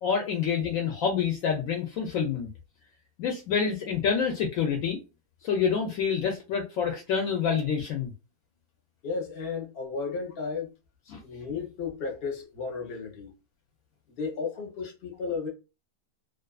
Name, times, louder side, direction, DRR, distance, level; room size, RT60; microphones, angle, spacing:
voice 1, 0.0-2.5 3.2-5.0 5.4-8.1 11.1-11.2, left 6 dB, 70° left, 0.9 m, -27 dB
voice 2, 9.0-10.7 11.2-13.3 14.2-15.5, left 5 dB, 45° left, 0.9 m, -34 dB
2.5 x 2.4 x 2.3 m
omnidirectional pair, 1.6 m